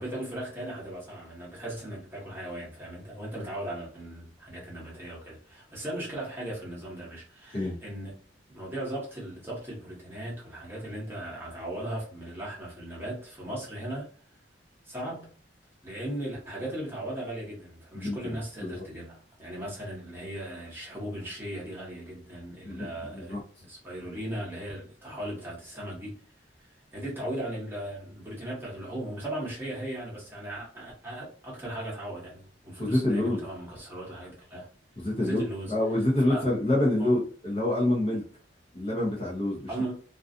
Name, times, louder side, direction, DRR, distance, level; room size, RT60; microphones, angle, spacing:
voice 1, 0.0-8.1 8.5-14.1 14.8-15.3 15.8-26.1 26.9-34.7 35.2-35.7 36.3-36.4 37.0-37.2 39.7-39.9, right 1 dB, 10° right, 1.0 m, -37 dB
voice 2, 17.9-18.4 18.6-18.8 22.6-23.4 32.8-33.5 35.0-35.4 35.7-38.2 38.7-39.7, left 1 dB, 30° left, 0.7 m, -27 dB
2.5 x 2.3 x 2.5 m
head